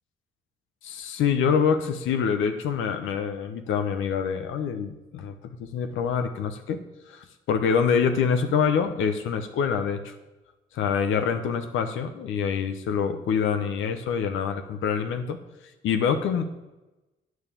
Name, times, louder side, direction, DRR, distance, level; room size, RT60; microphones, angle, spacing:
voice 1, 0.8-5.3 5.6-6.8 7.1-10.1 10.7-15.4 15.8-16.4, left 6 dB, 85° left, 7 dB, 1.0 m, -25 dB
9.2 x 6.5 x 8.5 m, 1.0 s
cardioid pair, 90°, 20 cm